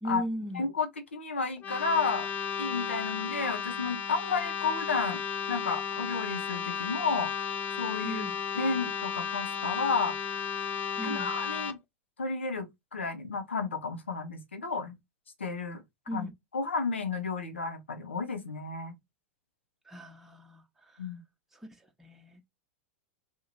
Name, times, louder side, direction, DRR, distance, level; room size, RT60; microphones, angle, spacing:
voice 1, 0.0-0.7 8.0-8.4 11.0-11.3 16.1-16.3 19.8-21.1 21.5-21.7 22.0-22.4, equal, 5° right, 0.9 m, -38 dB
voice 2, 0.5-2.3 2.6-5.2 5.5-7.3 7.8-8.2 8.5-10.1 11.0-11.8 12.2-14.9 15.4-15.8 16.1-16.3 16.5-18.9 21.0-21.2, left 4 dB, 85° left, 1.1 m, -32 dB
sound 1, 1.6-11.7, left 7 dB, 25° left, 0.6 m, -34 dB
2.9 x 2.7 x 3.8 m
hypercardioid pair, 95°, 6 cm